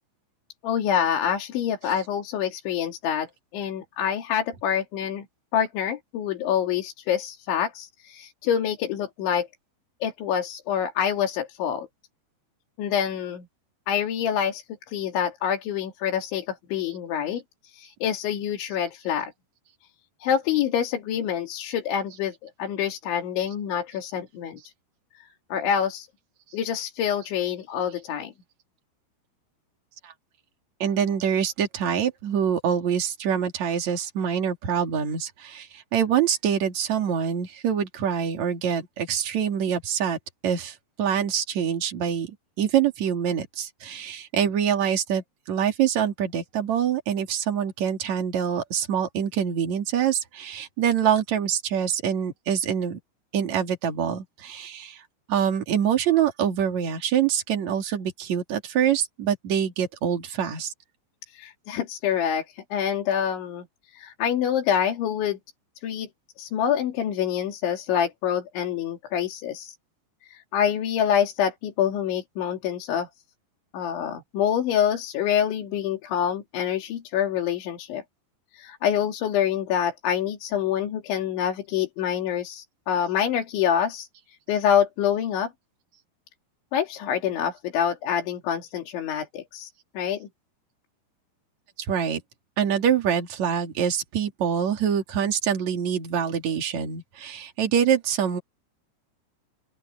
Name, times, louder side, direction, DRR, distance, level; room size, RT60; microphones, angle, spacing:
voice 1, 0.6-3.3 3.5-5.3 5.5-9.5 10.0-11.9 12.8-13.5 13.9-19.3 20.2-24.6 25.5-26.1 26.5-28.3 61.3-63.6 63.9-65.4 65.8-66.1 66.4-69.8 70.3-73.1 73.7-78.0 78.5-84.1 84.5-85.5 86.7-89.7 89.9-90.3, left 9 dB, 80° left, 5.1 m, -26 dB
voice 2, 30.8-40.2 40.4-53.0 53.3-55.0 55.3-60.7 91.8-92.2 92.6-98.4, right 8 dB, 45° right, 3.5 m, -25 dB
open air
omnidirectional pair, 5.2 m